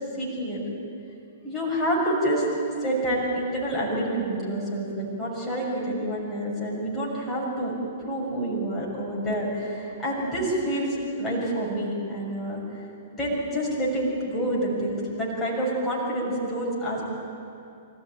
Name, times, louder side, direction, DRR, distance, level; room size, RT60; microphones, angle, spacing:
voice 1, 0.2-0.6 1.4-2.4 2.8-7.7 8.1-12.6 13.1-17.1, right 1 dB, 15° left, -5 dB, 6.6 m, -28 dB
25.5 x 14.5 x 9.1 m, 2.6 s
figure-of-eight pair, 105°, 0 cm